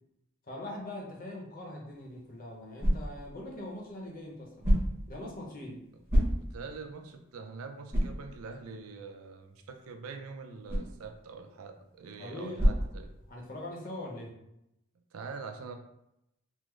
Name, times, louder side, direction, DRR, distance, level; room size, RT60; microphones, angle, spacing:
voice 1, 0.5-4.7 5.1-5.8 12.2-12.7 13.3-14.4, left 1 dB, 40° left, -1 dB, 0.7 m, -42 dB
sound 1, 1.9-13.7, equal, 10° right, 0.9 m, -33 dB
voice 2, 6.3-13.1 15.1-15.8, right 4 dB, 80° right, 5 dB, 0.4 m, -44 dB
3.6 x 2.0 x 3.1 m, 0.83 s
head